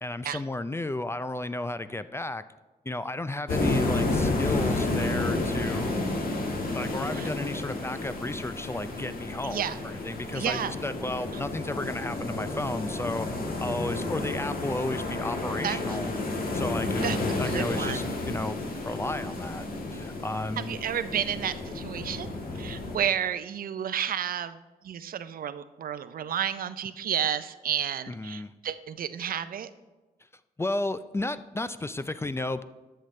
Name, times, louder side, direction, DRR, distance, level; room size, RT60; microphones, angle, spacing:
voice 1, 0.0-2.4 2.9-6.0 6.7-13.3 13.6-16.1 16.5-18.6 18.9-19.6 19.9-20.8 28.1-28.5 30.6-32.6, left 2 dB, 15° left, 13 dB, 0.4 m, -33 dB
sound 1, 3.5-23.0, left 2 dB, 65° left, 1.6 m, -31 dB
voice 2, 9.4-9.8 10.3-10.7 15.6-16.0 17.0-17.2 17.5-18.1 20.6-22.3 22.5-24.6 24.8-29.7, right 9 dB, 65° right, 13 dB, 0.5 m, -31 dB
13.0 x 6.8 x 3.2 m, 1.2 s
cardioid pair, 65°, 16 cm